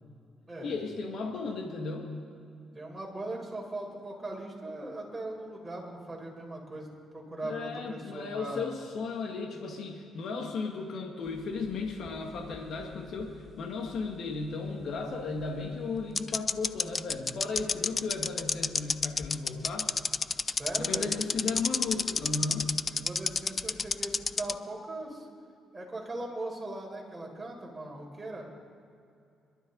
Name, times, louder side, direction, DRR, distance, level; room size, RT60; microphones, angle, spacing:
voice 1, 0.6-2.1 7.4-19.9 20.8-22.7, left 4 dB, 65° left, 2 dB, 1.9 m, -35 dB
voice 2, 2.7-8.7 20.5-21.2 22.9-25.3 25.7-28.5, right 2 dB, 15° right, -2 dB, 4.4 m, -39 dB
sound 1, 11.7-13.2 13.5-13.6 15.4-15.5 16.2-24.5, left 5 dB, 35° left, 0.4 m, -29 dB
26.0 x 12.0 x 4.0 m, 2.5 s
cardioid pair, 90°, 0 cm